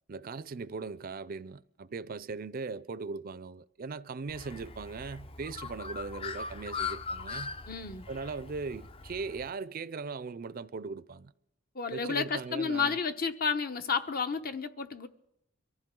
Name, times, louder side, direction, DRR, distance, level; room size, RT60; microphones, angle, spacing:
voice 1, 0.1-7.5 8.1-11.3 11.9-12.9, right 4 dB, 45° right, 0.5 m, -39 dB
Bird, 4.3-9.5, left 5 dB, 30° left, 0.5 m, -40 dB
voice 2, 7.7-8.0 11.7-15.1, left 5 dB, 50° left, 0.9 m, -31 dB
23.5 x 14.5 x 3.8 m
head